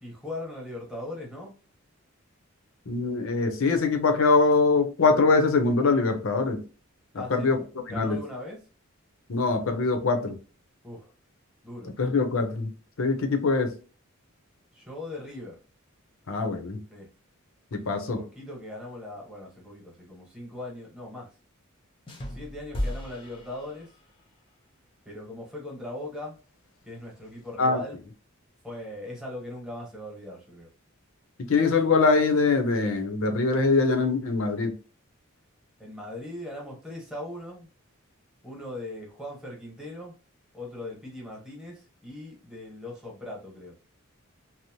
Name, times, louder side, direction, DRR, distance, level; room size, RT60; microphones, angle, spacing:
voice 1, 0.0-1.5 7.2-7.6 7.9-8.6 10.8-11.1 11.6-11.9 14.7-15.6 16.9-17.1 17.8-21.3 22.3-23.9 25.0-26.4 26.8-28.0 28.6-30.7 35.8-37.7 38.4-40.1 40.5-43.8, left 1 dB, 5° right, 1.0 m, -39 dB
voice 2, 2.9-6.6 7.1-7.6 7.9-8.2 9.3-10.4 12.0-12.7 13.0-13.7 16.3-16.8 17.7-18.2 27.6-27.8 31.4-34.7, left 4 dB, 65° left, 0.6 m, -23 dB
sound 1, 22.1-24.3, left 1 dB, 25° left, 0.6 m, -35 dB
2.7 x 2.0 x 2.9 m
head